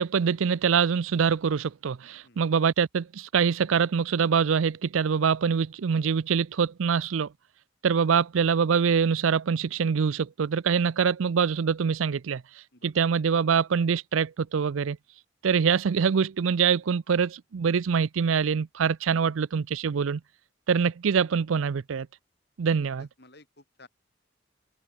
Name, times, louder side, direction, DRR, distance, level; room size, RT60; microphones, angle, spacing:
voice 1, 0.0-7.3 7.8-12.4 12.8-15.0 15.4-20.2 20.7-22.1 22.6-23.1, right 6 dB, 85° right, 0.5 m, -24 dB
voice 2, 23.2-23.9, left 2 dB, 55° left, 6.9 m, -54 dB
open air
head